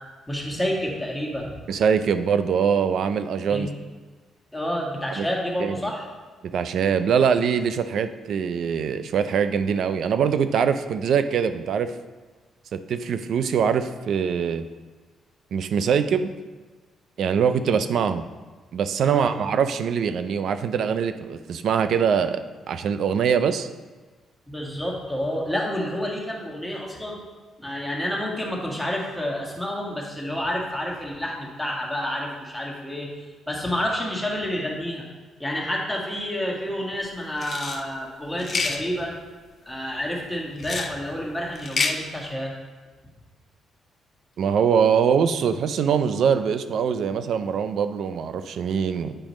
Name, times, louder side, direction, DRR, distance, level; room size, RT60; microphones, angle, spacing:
voice 1, 0.3-1.5 3.5-3.7 4.5-6.1 19.0-19.5 24.5-27.2 27.6-33.1 33.5-35.0 35.4-39.1 39.6-42.5, equal, 5° left, -3 dB, 1.7 m, -29 dB
voice 2, 1.7-3.7 5.2-5.3 5.6-5.8 6.5-11.9 12.7-14.7 15.5-16.3 17.2-18.3 18.7-23.7 44.4-49.1, right 7 dB, 65° right, 11 dB, 0.4 m, -23 dB
sound 1, 37.4-37.8 38.4-38.8 40.6-40.9 41.6-42.0, left 4 dB, 40° left, 0.6 m, -27 dB
8.8 x 4.9 x 3.1 m, 1.3 s
cardioid pair, 90°, 0 cm